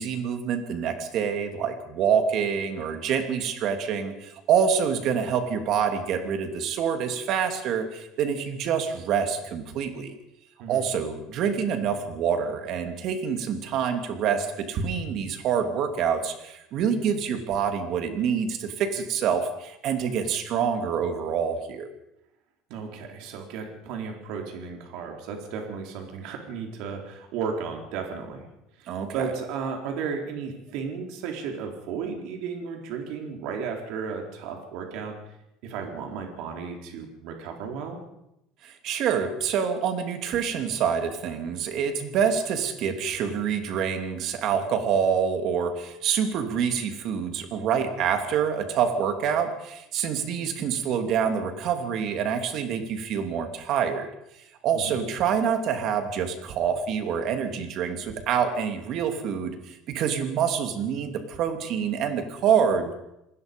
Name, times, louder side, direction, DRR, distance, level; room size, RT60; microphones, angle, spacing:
voice 1, 0.0-10.1 10.7-21.9 28.9-29.3 38.6-54.1 54.4-62.9, right 7 dB, 45° right, 6 dB, 2.9 m, -26 dB
voice 2, 22.7-28.5 28.8-35.2 35.6-38.0 54.7-55.0, right 6 dB, 65° right, 2 dB, 4.2 m, -34 dB
28.0 x 20.0 x 5.4 m, 0.85 s
cardioid pair, 165°, 0 cm